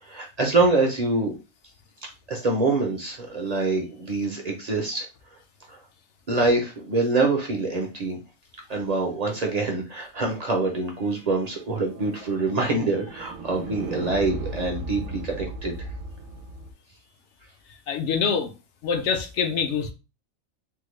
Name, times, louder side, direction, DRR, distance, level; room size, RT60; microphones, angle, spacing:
voice 1, 0.0-1.3 2.0-5.1 5.7-5.8 6.3-8.2 8.7-15.7, right 3 dB, 50° right, 0.5 m, -25 dB
sound 1, 11.1-16.7, right 2 dB, 75° right, 1.0 m, -37 dB
voice 2, 17.9-18.5 18.8-19.9, left 6 dB, 65° left, 0.8 m, -25 dB
3.6 x 2.1 x 3.1 m
omnidirectional pair, 1.4 m